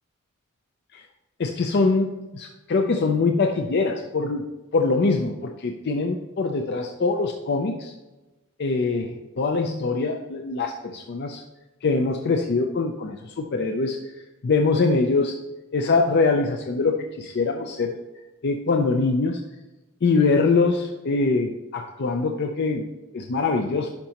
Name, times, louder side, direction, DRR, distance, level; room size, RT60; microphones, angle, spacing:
voice 1, 1.4-4.5 4.7-7.9 8.6-11.4 11.8-14.0 14.4-15.4 15.7-18.0 18.4-19.4 20.0-23.9, left 3 dB, 50° left, 4 dB, 0.4 m, -23 dB
10.5 x 5.3 x 2.9 m, 1.1 s
head